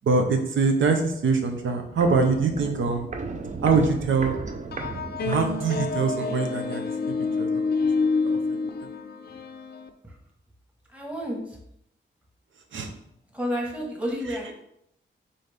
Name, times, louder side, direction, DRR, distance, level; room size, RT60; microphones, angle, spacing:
voice 1, 0.0-3.1 3.6-4.4 5.2-6.8 7.4-7.5 8.2-8.7 12.7-12.9 14.2-14.5, right 4 dB, 80° right, 4 dB, 0.7 m, -24 dB
Walk footsteps, 1.8-6.1 6.4-6.5, right 3 dB, 40° right, 0.5 m, -35 dB
sound 1, 4.7-9.9, left 4 dB, 55° left, 0.5 m, -27 dB
voice 2, 10.9-11.6 13.3-14.5, equal, 5° right, -1 dB, 1.2 m, -30 dB
4.1 x 3.8 x 3.4 m, 0.76 s
wide cardioid pair, 110°, 20 cm